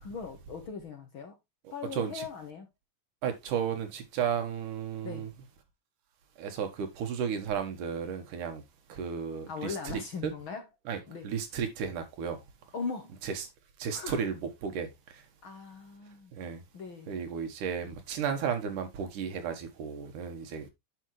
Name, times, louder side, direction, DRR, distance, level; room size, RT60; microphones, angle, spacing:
voice 1, 0.0-1.3 1.7-2.7 5.0-5.3 9.5-10.6 11.1-11.3 12.7-13.2 13.9-14.2 15.4-16.3 16.7-17.1, left 5 dB, 50° left, 1.7 m, -39 dB
voice 2, 1.6-2.2 3.2-5.3 6.4-8.6 8.9-10.3 10.9-12.4 13.2-13.5 13.8-15.2 16.3-16.6 17.1-20.7, right 7 dB, 80° right, 3.1 m, -34 dB
9.9 x 6.2 x 3.2 m
omnidirectional pair, 3.6 m